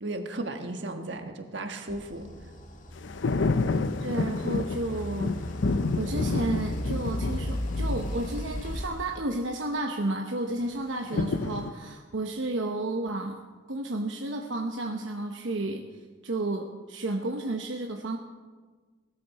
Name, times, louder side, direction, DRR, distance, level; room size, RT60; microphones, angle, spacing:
voice 1, 0.0-2.3, right 2 dB, 70° right, 5 dB, 1.5 m, -35 dB
sound 1, 1.9-8.9, equal, 40° left, 1.5 m, -36 dB
sound 2, 3.0-8.9 11.1-11.7, left 3 dB, 80° left, 0.6 m, -29 dB
voice 2, 4.0-5.3 6.0-13.4 13.7-18.2, right 2 dB, 85° right, 3 dB, 1.0 m, -32 dB
19.0 x 13.5 x 4.2 m, 1.4 s
head